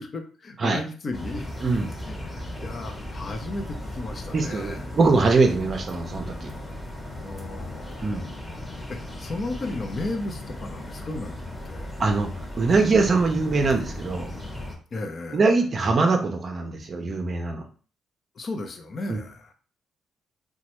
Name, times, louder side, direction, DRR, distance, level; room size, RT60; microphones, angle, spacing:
voice 1, 0.0-1.5 2.1-4.9 7.2-8.3 8.9-11.9 14.9-15.4 18.4-19.5, left 2 dB, 45° left, 6 dB, 0.6 m, -35 dB
sound 1, 1.1-14.8, left 1 dB, 5° left, 0.9 m, -36 dB
voice 2, 1.6-1.9 4.3-6.5 8.0-8.3 12.0-12.3 12.6-14.3 15.3-17.6 19.1-19.2, right 3 dB, 40° right, 4 dB, 0.5 m, -22 dB
3.1 x 2.2 x 3.0 m, 0.40 s
cardioid pair, 90°, 0 cm